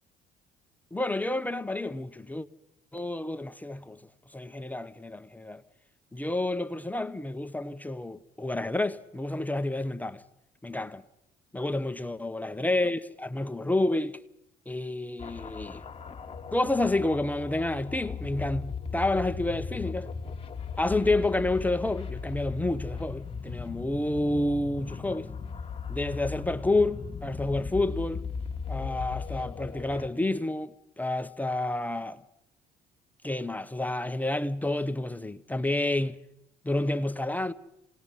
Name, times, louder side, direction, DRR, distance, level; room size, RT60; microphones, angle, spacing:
voice 1, 0.9-2.5 2.9-4.0 4.3-5.6 6.1-10.2 10.6-11.0 11.5-14.2 14.7-15.8 16.5-20.1 20.8-25.3 25.9-28.2 28.7-32.2 33.2-36.2 36.6-37.5, left 2 dB, 10° left, 0.8 m, -29 dB
sound 1, 15.2-30.1, left 5 dB, 35° left, 1.6 m, -37 dB
27.0 x 19.0 x 5.5 m
supercardioid pair, 85°, 17 cm